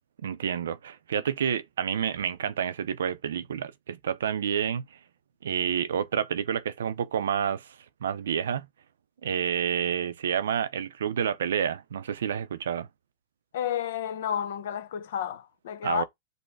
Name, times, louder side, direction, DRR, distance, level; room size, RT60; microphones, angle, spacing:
voice 1, 0.2-4.8 5.4-7.7 8.0-8.7 9.2-12.9 15.8-16.0, right 8 dB, 90° right, 0.5 m, -29 dB
voice 2, 13.5-16.0, left 9 dB, 75° left, 0.9 m, -31 dB
5.4 x 2.1 x 4.6 m
hypercardioid pair, 135°, 0 cm